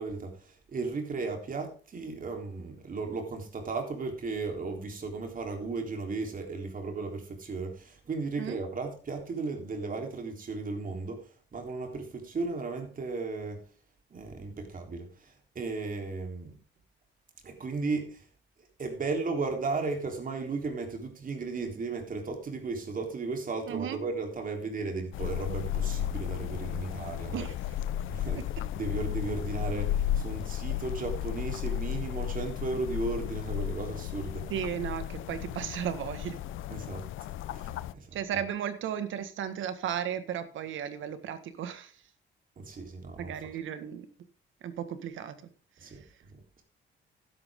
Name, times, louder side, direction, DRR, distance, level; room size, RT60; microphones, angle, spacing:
voice 1, 0.0-13.6 14.1-16.5 17.4-18.3 18.8-27.5 28.1-28.4 28.7-34.5 36.7-37.1 37.5-38.2 42.6-43.3 45.8-46.0 46.3-46.4, right 3 dB, 45° right, 3.7 m, -35 dB
voice 2, 23.7-24.0 27.3-27.5 28.3-28.5 34.5-36.4 38.1-41.9 43.2-44.1 44.6-45.5 45.8-46.0, right 9 dB, 75° right, 1.7 m, -35 dB
sound 1, 25.1-37.9, left 11 dB, 80° left, 0.6 m, -34 dB
12.5 x 11.0 x 3.7 m
cardioid pair, 90°, 20 cm